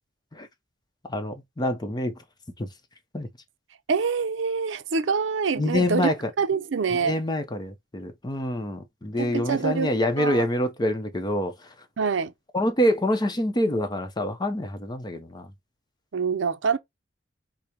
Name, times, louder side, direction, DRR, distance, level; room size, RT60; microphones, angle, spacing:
voice 1, 1.1-2.1 2.6-2.7 3.1-3.3 5.6-6.2 7.0-11.5 12.5-15.5, left 1 dB, 20° left, 0.7 m, -26 dB
voice 2, 3.9-7.2 9.2-10.4 12.0-12.3 16.1-16.8, right 5 dB, 70° right, 0.5 m, -26 dB
5.1 x 2.1 x 4.3 m
head